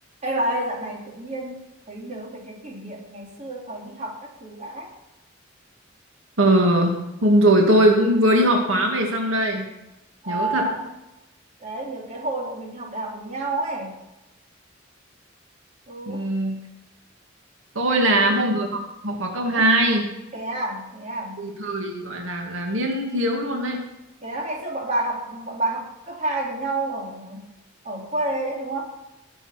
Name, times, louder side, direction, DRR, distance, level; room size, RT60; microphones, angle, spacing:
voice 1, 0.2-4.9 10.2-10.9 11.6-14.0 15.9-16.3 17.8-18.7 19.4-19.7 20.3-21.4 24.2-27.5 27.8-28.9, right 2 dB, 35° right, -2 dB, 3.4 m, -30 dB
voice 2, 6.4-6.9 7.2-9.7 10.3-10.7 16.1-16.6 17.8-18.7 19.0-20.1 21.4-23.8, right 1 dB, 85° right, 1 dB, 2.1 m, -20 dB
19.5 x 7.0 x 5.9 m, 0.98 s
head